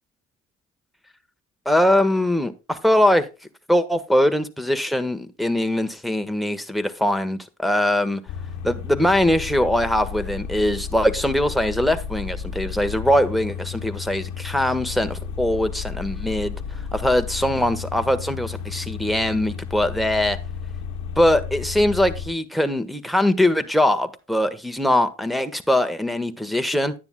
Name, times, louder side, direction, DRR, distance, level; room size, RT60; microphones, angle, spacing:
voice 1, 1.6-3.3 3.7-8.2 8.6-16.6 16.9-20.4 21.2-26.9, left 1 dB, ahead, 1.3 m, -21 dB
sound 1, 8.3-22.3, left 6 dB, 85° left, 0.9 m, -33 dB
11.0 x 9.6 x 2.2 m
cardioid pair, 75°, 29 cm